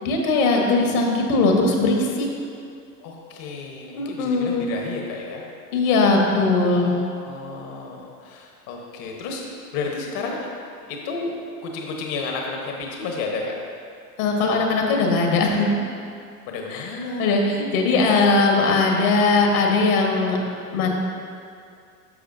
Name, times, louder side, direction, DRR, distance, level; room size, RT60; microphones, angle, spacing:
voice 1, 0.0-2.3 4.0-4.6 5.7-6.9 14.2-15.7 16.7-16.9 17.2-20.4 20.7-21.0, left 3 dB, 65° left, 0 dB, 1.7 m, -20 dB
voice 2, 3.0-5.5 6.7-10.5 10.9-13.6 16.5-17.3, left 3 dB, 45° left, 0 dB, 1.3 m, -32 dB
11.0 x 6.6 x 2.7 m, 2.3 s
hypercardioid pair, 95°, 47 cm